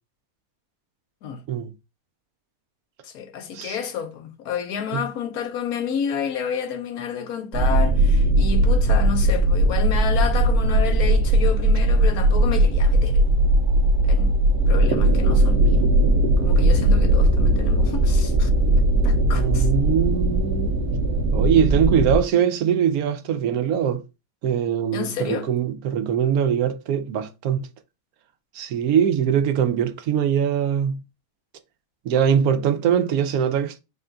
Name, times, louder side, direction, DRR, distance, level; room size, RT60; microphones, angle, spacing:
voice 1, 3.0-13.3 14.0-14.4 14.7-15.8 16.4-18.5 19.0-19.7 24.9-25.5, left 7 dB, 85° left, 1.2 m, -30 dB
sound 1, 7.5-22.2, right 1 dB, 55° right, 0.8 m, -18 dB
voice 2, 19.3-20.8 21.3-24.0 24.4-27.7 28.5-31.0 32.0-33.8, right 8 dB, 85° right, 1.1 m, -22 dB
4.2 x 2.3 x 3.7 m
omnidirectional pair, 1.5 m